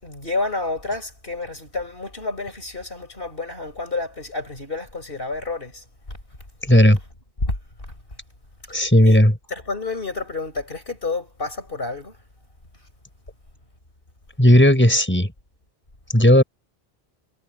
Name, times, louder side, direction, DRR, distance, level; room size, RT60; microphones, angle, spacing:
voice 1, 0.0-6.2 6.9-7.1 7.4-7.6 8.7-8.8 9.0-12.2, left 3 dB, 60° left, 5.3 m, -30 dB
voice 2, 6.7-7.0 8.7-9.3 14.4-15.3 16.1-16.4, equal, 10° left, 4.6 m, -14 dB
omnidirectional pair, 1.0 m